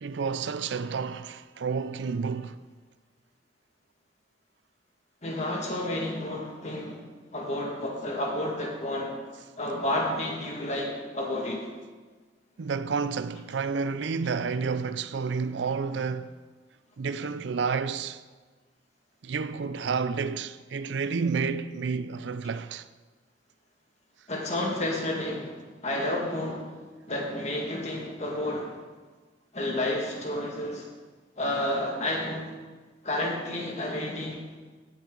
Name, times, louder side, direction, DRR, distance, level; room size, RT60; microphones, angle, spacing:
voice 1, 0.0-2.6 12.6-16.4 17.0-18.2 19.2-22.9, right 5 dB, 75° right, 0.5 m, -30 dB
voice 2, 5.2-7.0 7.3-9.2 9.6-11.7 24.3-25.6 25.8-26.7 27.1-28.8 29.5-30.9 31.4-32.5 33.0-34.4, left 1 dB, 40° left, 2.0 m, -30 dB
16.5 x 7.4 x 3.9 m
head